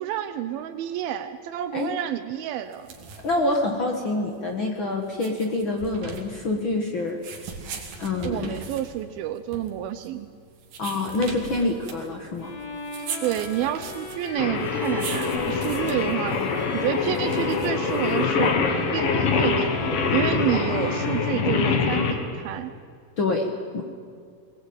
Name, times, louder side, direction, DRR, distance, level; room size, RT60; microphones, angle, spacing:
voice 1, 0.0-2.9 8.2-10.3 13.2-16.4 16.7-18.5 18.9-22.7, right 12 dB, 85° right, 10 dB, 2.6 m, -29 dB
sound 1, 2.7-18.5, right 5 dB, 65° right, 3.6 m, -40 dB
voice 2, 3.2-7.2 8.0-8.5 10.8-12.5 16.3-16.6 23.2-23.8, left 2 dB, 45° left, 2 dB, 1.7 m, -26 dB
Bowed string instrument, 12.4-22.2, left 3 dB, 85° left, 4.2 m, -36 dB
Singing, 14.4-22.1, left 5 dB, 70° left, 3.5 m, -24 dB
21.0 x 19.5 x 8.8 m, 2.1 s
omnidirectional pair, 4.2 m